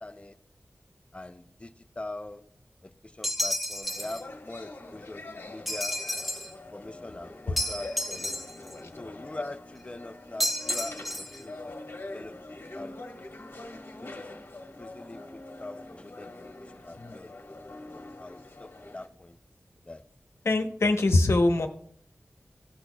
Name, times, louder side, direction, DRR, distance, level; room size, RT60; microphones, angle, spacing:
voice 1, 0.0-0.3 1.1-2.4 2.8-6.0 6.7-8.3 9.0-11.5 12.1-12.4 12.7-13.2 14.0-14.3 14.8-16.3 16.6-17.3 17.8-19.4 19.8-20.0, left 2 dB, 25° left, 10 dB, 0.5 m, -42 dB
sound 1, 3.2-4.2 5.7-6.5 7.6-8.7 10.4-11.4, equal, ahead, 1.1 m, -31 dB
sound 2, 3.8-19.1, left 2 dB, 60° left, 1.2 m, -44 dB
voice 2, 20.4-21.7, left 2 dB, 80° left, 5 dB, 0.9 m, -22 dB
16.0 x 6.2 x 2.2 m, 0.68 s
wide cardioid pair, 75°, 5 cm